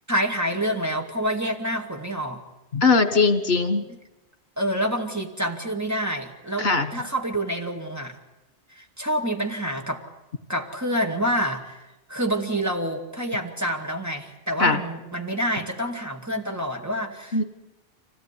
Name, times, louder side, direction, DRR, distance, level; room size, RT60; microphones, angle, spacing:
voice 1, 0.1-2.4 3.9-4.0 4.6-8.2 8.7-10.0 10.5-17.4, equal, 15° right, 2 dB, 2.4 m, -27 dB
voice 2, 2.7-3.8 6.6-6.9 14.6-14.8 17.3-17.4, left 4 dB, 65° left, 10 dB, 1.9 m, -20 dB
25.0 x 17.5 x 9.9 m, 0.98 s
omnidirectional pair, 1.1 m